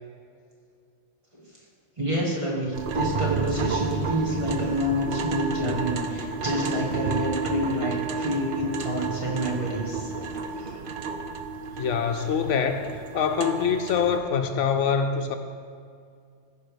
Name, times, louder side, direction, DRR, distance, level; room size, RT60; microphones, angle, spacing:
voice 1, 2.0-10.1 10.5-10.8, equal, 25° right, -4 dB, 2.0 m, -28 dB
sound 1, 2.7-14.2, right 4 dB, 55° right, 0.7 m, -31 dB
voice 2, 11.8-12.9 13.1-15.4, left 6 dB, 75° left, 7 dB, 1.0 m, -24 dB
15.0 x 5.2 x 5.2 m, 2.3 s
omnidirectional pair, 1.3 m